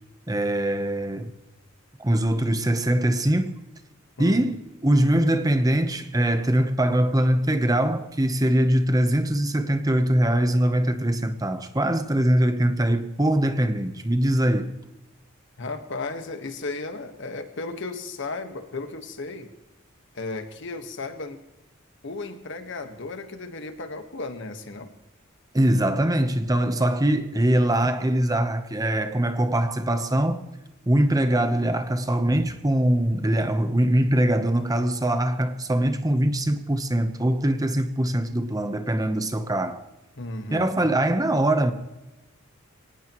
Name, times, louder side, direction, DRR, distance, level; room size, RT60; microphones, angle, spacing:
voice 1, 0.3-1.3 2.0-3.5 4.2-14.7 25.5-30.4 30.9-39.8 40.5-41.7, right 1 dB, 20° right, 0.9 m, -22 dB
voice 2, 15.6-19.5 20.1-21.4 22.0-24.9 40.2-40.7, left 3 dB, 60° left, 1.6 m, -34 dB
23.5 x 18.5 x 3.1 m
head